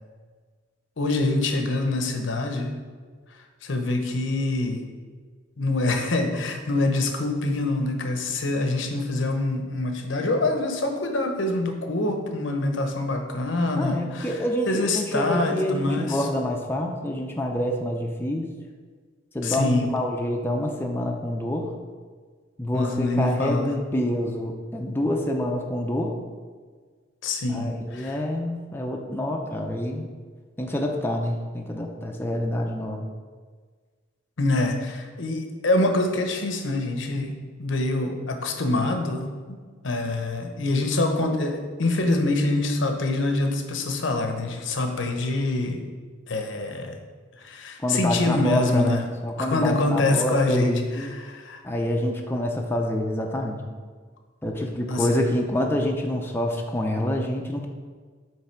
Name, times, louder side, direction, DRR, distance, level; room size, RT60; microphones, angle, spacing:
voice 1, 1.0-2.7 3.6-4.8 5.6-14.4 14.7-16.3 19.4-19.9 22.7-23.7 27.2-28.2 34.4-37.3 37.6-39.6 39.8-45.8 46.3-47.0 47.4-49.0 49.4-51.6 54.9-55.1, left 2 dB, 75° left, 5 dB, 0.8 m, -25 dB
voice 2, 13.8-18.5 19.3-21.7 22.6-26.2 27.5-30.1 30.6-33.1 47.8-51.1 51.6-53.6 54.4-57.7, left 1 dB, 10° left, 1 dB, 0.5 m, -27 dB
7.7 x 3.2 x 4.5 m, 1.5 s
head